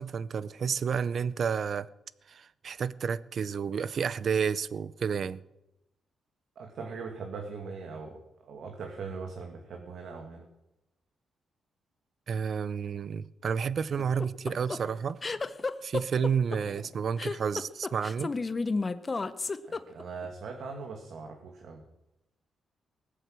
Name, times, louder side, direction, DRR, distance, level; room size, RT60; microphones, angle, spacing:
voice 1, 0.0-1.9 2.3-5.4 12.3-15.2 15.8-18.3, right 6 dB, 55° right, 0.6 m, -30 dB
voice 2, 6.6-10.4 19.6-21.8, right 4 dB, 70° right, 2.2 m, -40 dB
sound 1, 14.0-20.3, left 3 dB, 30° left, 0.8 m, -32 dB
19.5 x 8.3 x 7.6 m
cardioid pair, 105°, 0 cm